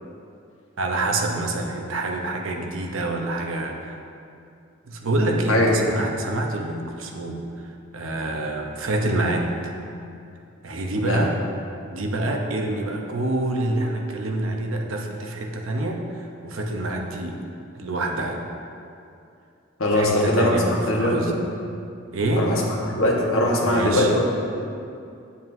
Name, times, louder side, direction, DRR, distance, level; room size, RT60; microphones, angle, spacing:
voice 1, 0.8-4.0 4.8-9.7 10.6-11.4 11.9-17.4 17.7-18.4 19.9-21.3 22.1-22.5 23.6-24.1, right 2 dB, 80° right, 2 dB, 0.8 m, -27 dB
voice 2, 19.8-20.6 20.9-21.2 22.4-22.6 22.9-24.3, left 1 dB, 85° left, -3 dB, 1.4 m, -20 dB
9.1 x 8.3 x 2.7 m, 2.5 s
head